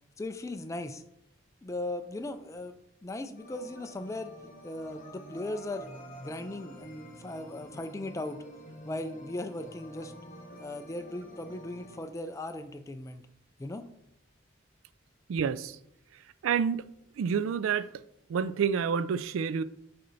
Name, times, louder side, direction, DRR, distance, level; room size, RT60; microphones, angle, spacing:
voice 1, 0.2-1.0 1.6-2.8 3.0-4.3 4.6-5.9 6.2-8.4 8.8-10.1 10.6-13.2 13.6-13.9, left 2 dB, 15° left, 0.3 m, -38 dB
sound 1, 3.4-12.0, equal, 40° left, 1.2 m, -48 dB
voice 2, 15.3-15.8 16.4-16.9 17.2-17.9 18.3-19.6, right 7 dB, 85° right, 0.3 m, -28 dB
6.5 x 4.3 x 4.0 m
head